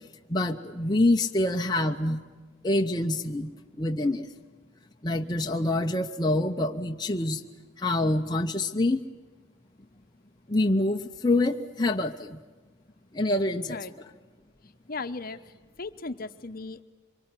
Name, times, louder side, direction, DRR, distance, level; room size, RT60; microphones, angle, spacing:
voice 1, 0.3-2.2 2.6-3.5 3.8-4.3 5.0-7.4 7.8-9.0 10.5-12.4 13.1-13.8, left 2 dB, 20° left, 3 dB, 0.8 m, -26 dB
voice 2, 14.9-15.4 15.8-16.8, left 3 dB, 45° left, 10 dB, 1.0 m, -36 dB
25.0 x 23.0 x 9.7 m, 1.4 s
head